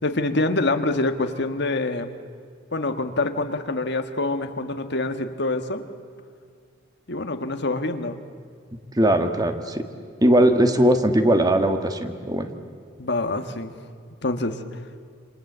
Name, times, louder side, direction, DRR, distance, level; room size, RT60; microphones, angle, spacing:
voice 1, 0.0-2.1 2.7-5.8 7.1-8.2 13.0-13.7 14.2-14.6, left 2 dB, 60° left, 7 dB, 1.5 m, -25 dB
voice 2, 8.9-9.8 10.2-12.5, right 1 dB, 20° right, 6 dB, 1.7 m, -19 dB
27.5 x 27.0 x 8.0 m, 2.1 s
head